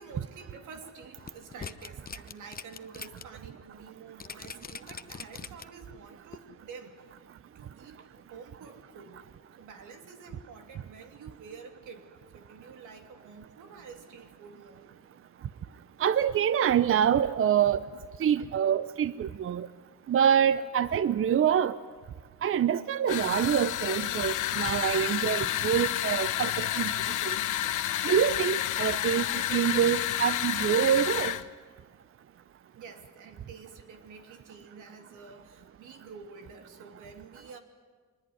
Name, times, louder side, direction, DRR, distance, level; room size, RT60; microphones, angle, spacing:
voice 1, 0.0-7.1 7.5-9.2 9.6-15.1 32.7-37.6, right 5 dB, 80° right, 5 dB, 2.9 m, -49 dB
sound 1, 1.2-3.2 3.6-3.7 4.2-5.9 6.3-6.4, left 6 dB, 30° left, 0.9 m, -42 dB
voice 2, 16.0-17.8 18.2-19.7 20.1-21.8 22.4-27.4 28.0-31.3, right 9 dB, 45° right, 15 dB, 0.6 m, -26 dB
sound 2, 23.1-31.4, left 13 dB, 80° left, 1.0 m, -30 dB
23.5 x 20.5 x 9.7 m, 1.5 s
cardioid pair, 90°, 30 cm